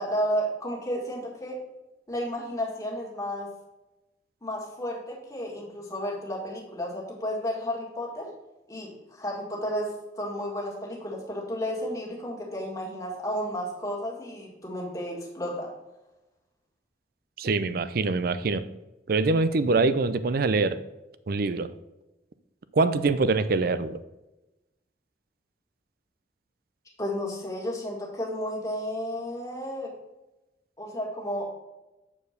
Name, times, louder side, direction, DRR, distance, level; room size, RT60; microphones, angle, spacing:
voice 1, 0.0-1.6 2.1-3.5 4.4-8.3 8.7-9.9 10.2-15.7 27.0-29.9 30.8-31.5, equal, 20° left, -3 dB, 1.9 m, -32 dB
voice 2, 17.4-18.6 19.1-20.8 21.3-21.7 22.7-24.0, right 3 dB, 55° right, 13 dB, 0.5 m, -24 dB
7.3 x 4.5 x 6.5 m, 0.99 s
head